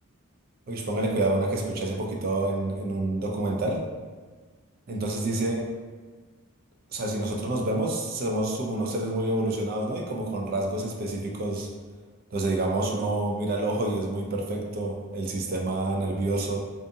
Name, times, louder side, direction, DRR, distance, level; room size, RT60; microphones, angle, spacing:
voice 1, 0.7-3.8 4.9-5.6 6.9-11.7 12.3-16.6, right 2 dB, 45° right, 0 dB, 0.3 m, -28 dB
2.6 x 2.4 x 2.5 m, 1.4 s
head